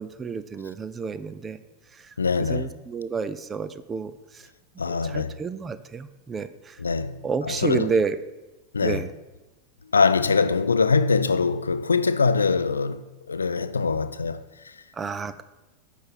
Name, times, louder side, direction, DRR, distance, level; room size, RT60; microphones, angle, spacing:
voice 1, 0.0-1.6 1.9-4.5 4.9-6.8 7.2-8.2 8.8-9.1 14.9-15.4, right 5 dB, 20° right, 0.4 m, -30 dB
voice 2, 2.2-2.7 4.8-5.4 6.8-7.9 8.7-9.0 9.9-14.7, left 4 dB, 75° left, 0.3 m, -23 dB
9.5 x 3.4 x 5.3 m
figure-of-eight pair, 90°, 0 cm